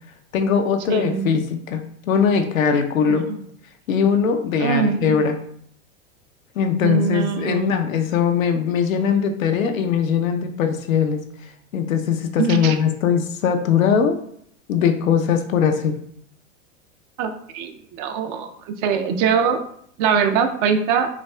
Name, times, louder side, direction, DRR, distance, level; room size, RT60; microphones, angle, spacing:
voice 1, 0.3-1.8 2.1-3.3 3.9-5.4 6.6-11.2 11.7-14.2 14.7-16.0, left 7 dB, 85° left, 6 dB, 0.7 m, -20 dB
voice 2, 0.9-1.3 3.1-3.4 4.6-5.2 6.8-7.7 12.4-12.8 17.2-19.6 20.0-21.1, right 6 dB, 40° right, 7 dB, 0.5 m, -22 dB
5.7 x 2.3 x 2.2 m, 0.66 s
hypercardioid pair, 110°, 40 cm